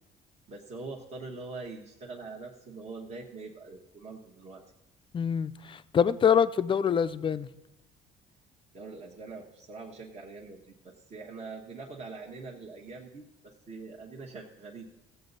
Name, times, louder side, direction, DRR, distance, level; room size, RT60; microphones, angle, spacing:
voice 1, 0.5-4.6 8.7-14.9, right 3 dB, 40° right, 1.2 m, -43 dB
voice 2, 5.1-7.5, left 7 dB, 30° left, 0.4 m, -25 dB
15.0 x 8.0 x 4.0 m
cardioid pair, 110°, 17 cm